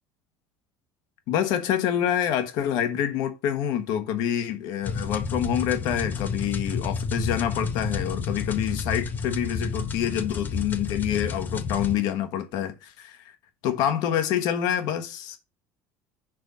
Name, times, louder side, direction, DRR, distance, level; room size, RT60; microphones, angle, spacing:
voice 1, 1.3-13.3 13.6-15.4, left 9 dB, 65° left, 1.3 m, -27 dB
sound 1, 4.8-12.0, left 5 dB, 25° left, 0.8 m, -30 dB
6.2 x 4.1 x 6.1 m
cardioid pair, 135°, 7 cm